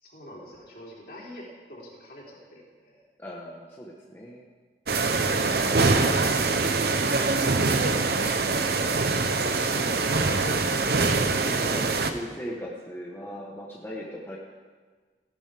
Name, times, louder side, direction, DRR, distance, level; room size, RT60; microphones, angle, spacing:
voice 1, 0.0-3.0, left 1 dB, 55° left, -4 dB, 3.4 m, -46 dB
voice 2, 3.2-4.4 8.6-10.7 11.4-14.4, equal, 15° left, -3 dB, 1.1 m, -39 dB
sound 1, 4.9-12.1, right 3 dB, 60° right, 0.8 m, -24 dB
16.5 x 11.5 x 3.5 m, 1.5 s
head